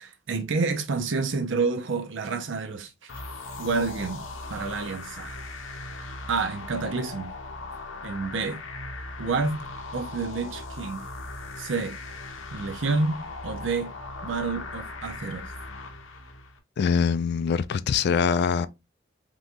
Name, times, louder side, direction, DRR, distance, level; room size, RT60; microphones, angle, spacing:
voice 1, 0.0-3.1 3.6-4.2 4.5-5.4 6.3-7.3 8.0-8.6 9.2-9.6 9.9-11.1 11.6-12.0 12.5-13.9 14.2-15.5, right 4 dB, 75° right, 0.7 m, -29 dB
sound 1, 3.1-16.6, left 2 dB, 85° left, 0.7 m, -39 dB
voice 2, 16.8-18.7, left 6 dB, 60° left, 0.3 m, -23 dB
3.6 x 3.0 x 2.6 m
head